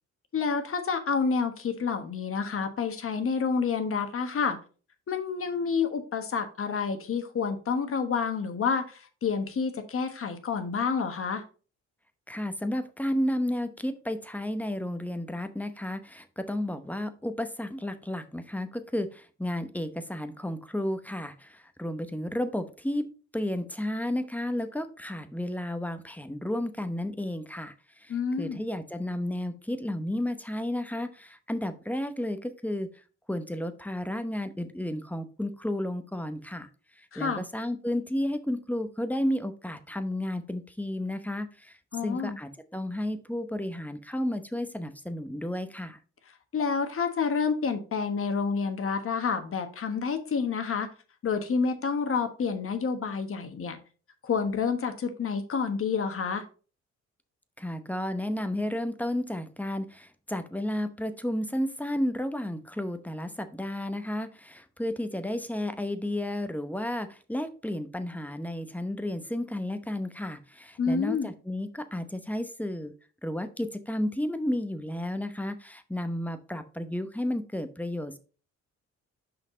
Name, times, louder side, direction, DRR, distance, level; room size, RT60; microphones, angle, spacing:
voice 1, 0.3-4.6 5.1-11.4 28.1-28.6 37.1-37.4 41.9-42.4 46.5-50.9 51.2-53.8 54.2-56.4 70.8-71.3, left 5 dB, 45° left, 7 dB, 1.2 m, -29 dB
voice 2, 12.3-23.1 23.3-32.9 33.3-36.7 37.0-46.0 57.6-72.9 73.2-78.2, left 1 dB, 5° left, 9 dB, 0.8 m, -32 dB
5.9 x 5.3 x 3.8 m, 0.37 s
cardioid pair, 90°, 30 cm